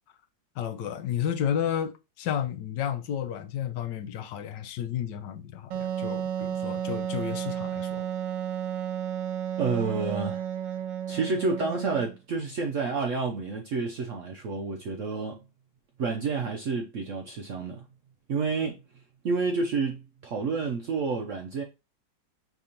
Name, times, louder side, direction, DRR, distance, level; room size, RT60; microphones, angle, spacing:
voice 1, 0.6-8.1, left 9 dB, 80° left, 1.3 m, -32 dB
Wind instrument woodwind instrument, 5.7-12.2, right 10 dB, 85° right, 1.3 m, -32 dB
voice 2, 9.6-10.4 11.1-15.4 16.0-17.9 18.3-21.6, right 4 dB, 70° right, 0.7 m, -29 dB
5.0 x 3.4 x 2.8 m
omnidirectional pair, 1.9 m